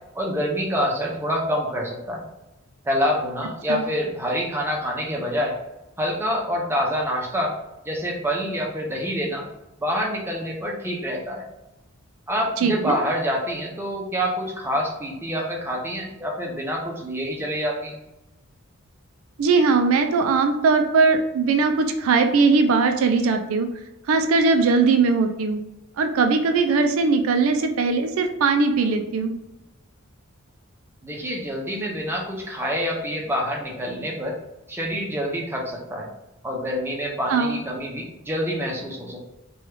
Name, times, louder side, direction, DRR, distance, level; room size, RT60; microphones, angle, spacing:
voice 1, 0.1-2.3 2.9-5.5 6.0-7.5 7.8-9.5 9.8-11.5 12.3-18.0 31.0-34.4 34.7-36.1 36.4-39.3, equal, 10° right, 0 dB, 0.5 m, -26 dB
voice 2, 12.6-12.9 19.4-23.7 24.1-25.6 26.0-29.3 37.3-37.6, right 4 dB, 65° right, 6 dB, 0.3 m, -20 dB
3.0 x 2.3 x 3.2 m, 0.95 s
head